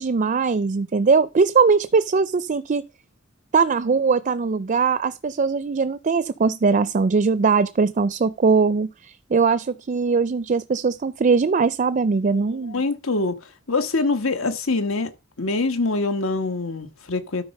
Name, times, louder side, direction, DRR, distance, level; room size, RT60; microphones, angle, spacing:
voice 1, 0.0-2.8 3.5-12.8, right 5 dB, 40° right, 0.4 m, -20 dB
voice 2, 12.7-13.4 13.7-15.1 15.4-17.4, left 3 dB, 75° left, 1.4 m, -24 dB
13.0 x 4.5 x 5.3 m
head